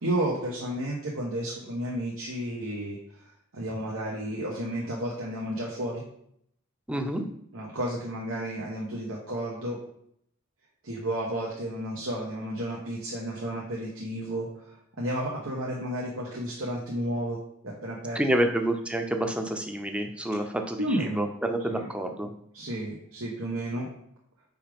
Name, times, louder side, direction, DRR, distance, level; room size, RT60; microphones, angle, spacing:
voice 1, 0.0-3.3 3.5-6.0 7.5-9.8 10.8-17.4 17.6-18.5 20.8-21.3 21.7-21.9 22.5-23.9, right 1 dB, 90° right, -4 dB, 1.2 m, -32 dB
voice 2, 6.9-7.2 18.2-22.3, right 1 dB, 5° right, 5 dB, 0.6 m, -28 dB
5.6 x 4.8 x 5.2 m, 0.69 s
head